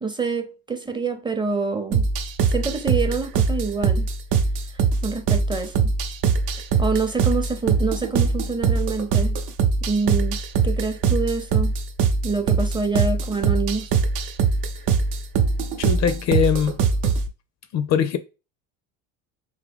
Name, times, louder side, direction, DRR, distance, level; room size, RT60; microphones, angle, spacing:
voice 1, 0.0-2.1 2.5-4.1 4.7-5.9 6.8-9.4 9.9-10.4 10.6-11.7 12.2-13.9, right 4 dB, 10° right, 0.6 m, -26 dB
sound 1, 1.9-17.3, right 5 dB, 65° right, 0.7 m, -22 dB
voice 2, 15.8-16.8 17.7-18.2, left 8 dB, 45° left, 0.5 m, -21 dB
3.6 x 2.7 x 3.5 m
supercardioid pair, 80°, 39 cm